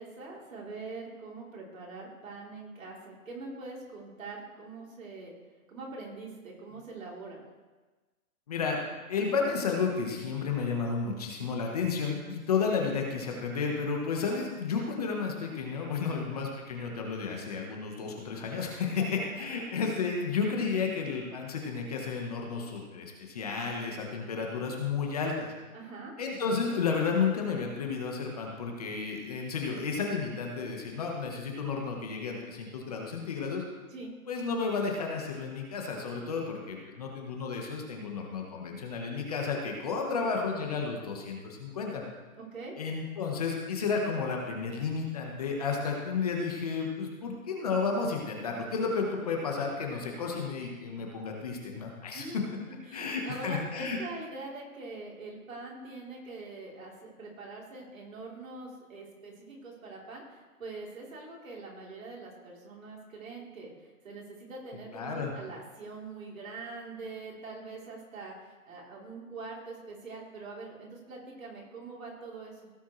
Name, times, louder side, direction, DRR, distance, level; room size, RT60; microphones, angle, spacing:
voice 1, 0.0-5.3 5.7-7.4 16.1-16.3 19.0-19.3 25.7-26.1 33.9-34.1 40.0-40.3 42.4-42.7 52.1-52.4 52.9-63.7 64.0-72.7, right 3 dB, 65° right, -3 dB, 3.6 m, -43 dB
voice 2, 8.5-8.8 9.1-25.5 26.2-33.6 34.3-42.0 42.8-52.2 52.9-54.0 64.9-65.3, left 5 dB, 25° left, 0 dB, 1.2 m, -32 dB
17.0 x 7.1 x 3.2 m, 1.3 s
hypercardioid pair, 170°, 44 cm